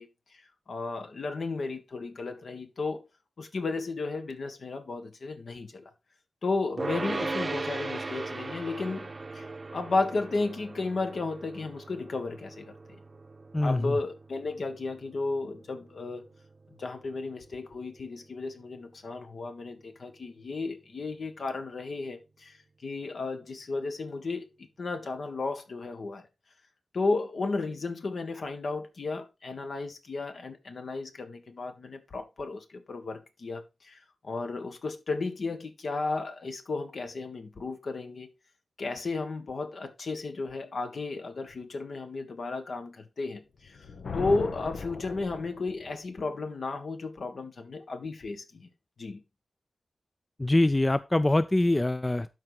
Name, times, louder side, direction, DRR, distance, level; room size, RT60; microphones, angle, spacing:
voice 1, 0.0-3.1 3.4-5.9 6.4-9.5 9.7-12.7 13.6-16.2 16.8-24.5 24.8-26.2 26.9-38.3 38.8-43.8 44.1-48.7 49.0-49.2, left 3 dB, 65° left, 1.6 m, -34 dB
sound 1, 6.8-18.1, right 3 dB, 35° right, 0.7 m, -38 dB
voice 2, 13.5-14.0 50.4-52.3, left 1 dB, 20° left, 0.4 m, -24 dB
Thunder, 43.6-46.0, left 4 dB, 85° left, 1.1 m, -38 dB
12.0 x 4.9 x 4.0 m
wide cardioid pair, 125°, 0 cm